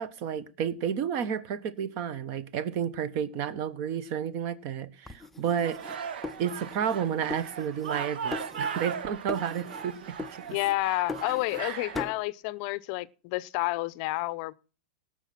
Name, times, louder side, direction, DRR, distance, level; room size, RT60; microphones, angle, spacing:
voice 1, 0.0-5.8 6.4-10.0 11.6-11.9, right 8 dB, 40° right, 1.2 m, -31 dB
sound 1, 5.1-7.0 7.3-8.0 8.3-9.0 9.3-9.9 10.2-11.7 11.9-12.2, left 3 dB, 5° left, 0.6 m, -40 dB
sound 2, 5.6-12.0, right 7 dB, 70° right, 1.2 m, -38 dB
voice 2, 10.5-14.5, left 19 dB, 40° left, 0.6 m, -30 dB
17.5 x 6.5 x 5.9 m
hypercardioid pair, 150°, 5 cm